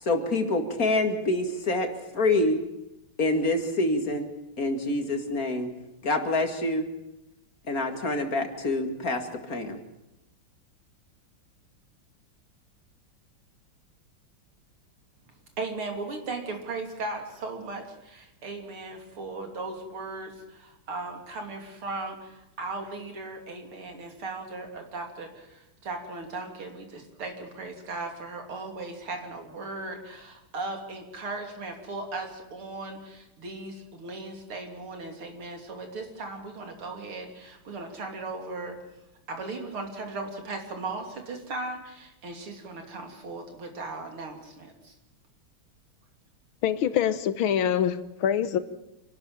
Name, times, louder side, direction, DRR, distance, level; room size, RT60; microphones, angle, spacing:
voice 1, 0.0-1.9 2.1-2.6 3.2-4.3 4.6-5.7 6.0-6.9 7.7-9.8, left 2 dB, 45° left, 2.4 m, -26 dB
voice 2, 15.6-38.8 39.3-44.9, right 3 dB, 80° right, 3.8 m, -37 dB
voice 3, 46.6-48.6, left 9 dB, 75° left, 1.8 m, -25 dB
26.5 x 12.5 x 8.9 m
omnidirectional pair, 2.3 m